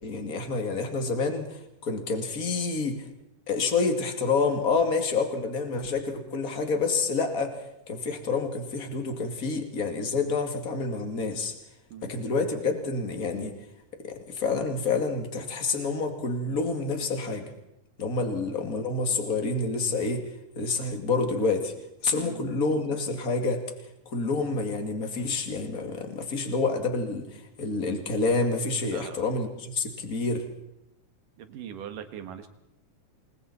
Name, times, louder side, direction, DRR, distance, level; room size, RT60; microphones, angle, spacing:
voice 1, 0.0-3.1 3.5-11.5 12.0-13.5 14.0-17.5 18.0-21.7 22.0-23.6 24.1-30.5, left 3 dB, 30° left, 5 dB, 2.5 m, -28 dB
voice 2, 28.9-29.2 31.4-32.5, right 9 dB, 75° right, 8 dB, 3.2 m, -41 dB
27.5 x 22.0 x 4.3 m, 0.86 s
omnidirectional pair, 3.8 m